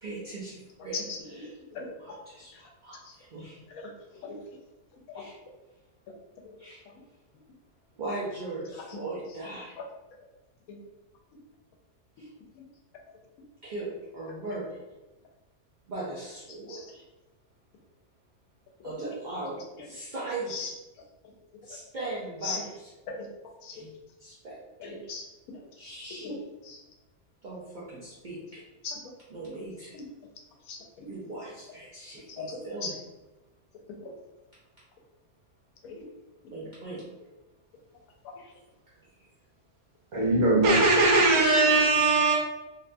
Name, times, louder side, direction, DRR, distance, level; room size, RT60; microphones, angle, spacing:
voice 1, 0.0-1.5 2.0-3.6 4.1-4.2 5.1-5.4 6.6-6.8 7.9-9.8 12.2-12.3 13.6-14.8 15.9-17.0 18.8-20.7 21.6-22.9 23.7-23.9 24.2-25.0 25.8-26.3 27.4-28.6 29.3-30.0 31.1-32.9 36.5-37.0 38.9-39.0, right 2 dB, 85° right, -7 dB, 0.4 m, -39 dB
voice 2, 0.9-1.9 3.7-4.3 5.1-5.2 12.5-12.6 16.7-16.8 20.5-20.7 22.4-22.6 23.1-23.2 23.6-23.8 24.8-25.2 26.2-26.4 26.6-26.8 28.8-29.0 29.9-30.0 30.7-31.1 32.3-32.9 34.0-34.1 35.8-36.1, left 4 dB, 80° left, 1 dB, 1.0 m, -38 dB
voice 3, 40.1-42.3, right 2 dB, 70° right, -3 dB, 1.2 m, -20 dB
2.8 x 2.1 x 2.5 m, 1.0 s
omnidirectional pair, 1.5 m